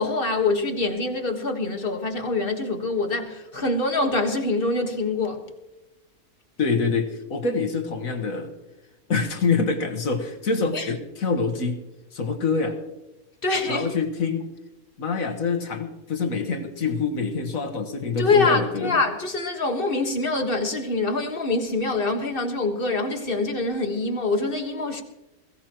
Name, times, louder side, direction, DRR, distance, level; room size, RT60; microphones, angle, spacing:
voice 1, 0.0-5.4 10.7-10.9 13.4-13.9 18.2-25.0, left 3 dB, 40° left, 1.6 m, -25 dB
voice 2, 6.6-8.5 9.1-11.8 12.1-12.8 13.7-14.5 15.0-19.0, left 4 dB, 65° left, 1.7 m, -26 dB
21.0 x 16.5 x 3.0 m
omnidirectional pair, 1.6 m